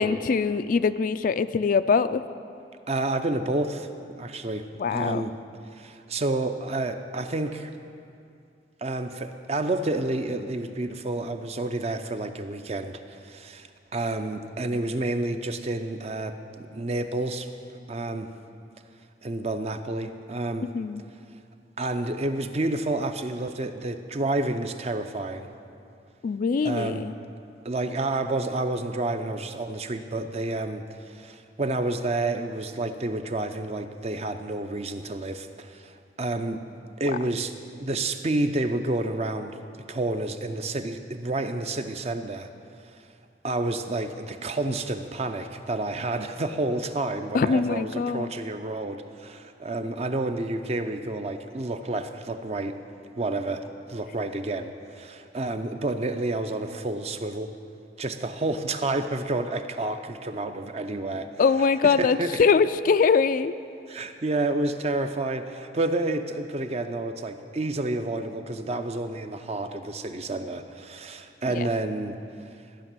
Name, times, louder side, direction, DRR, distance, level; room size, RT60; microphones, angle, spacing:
voice 1, 0.0-2.2 4.8-5.2 20.6-21.0 26.2-27.1 47.3-48.3 61.4-63.5 71.6-71.7, left 5 dB, 50° left, 12 dB, 0.3 m, -23 dB
voice 2, 2.9-3.9 4.2-5.4 5.7-7.7 8.8-17.6 17.9-18.3 19.2-20.7 21.8-25.5 26.6-27.1 27.6-36.6 37.0-39.6 39.9-42.5 42.8-42.9 43.4-52.8 53.2-57.5 58.0-61.3 61.8-62.4 63.9-72.2, right 2 dB, 35° right, 8 dB, 0.6 m, -29 dB
14.0 x 6.0 x 8.9 m, 2.5 s
head